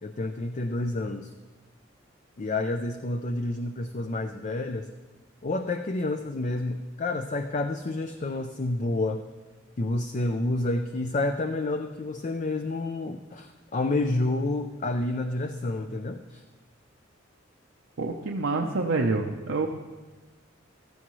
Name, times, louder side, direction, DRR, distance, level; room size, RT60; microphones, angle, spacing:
voice 1, 0.0-1.3 2.4-4.9 5.4-9.2 9.8-16.4 18.6-18.7, left 2 dB, 40° left, 7 dB, 0.5 m, -29 dB
voice 2, 18.0-19.7, right 3 dB, 80° right, 1 dB, 0.7 m, -27 dB
15.5 x 13.5 x 3.1 m, 1.2 s
head